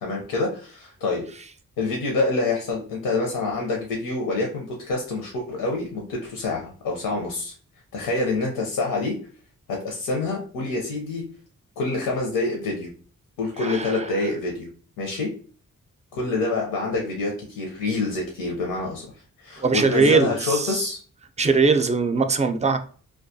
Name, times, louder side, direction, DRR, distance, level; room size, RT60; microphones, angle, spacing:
voice 1, 0.0-1.3 1.8-7.5 7.9-9.2 9.7-11.2 11.8-12.9 13.4-14.7 15.0-15.3 16.1-19.1 19.4-21.0, left 3 dB, 90° left, 0 dB, 0.6 m, -26 dB
voice 2, 13.6-14.1 19.6-20.9 21.4-22.8, right 4 dB, 20° right, 8 dB, 0.4 m, -21 dB
2.3 x 2.2 x 2.6 m, 0.41 s
supercardioid pair, 45°, 34 cm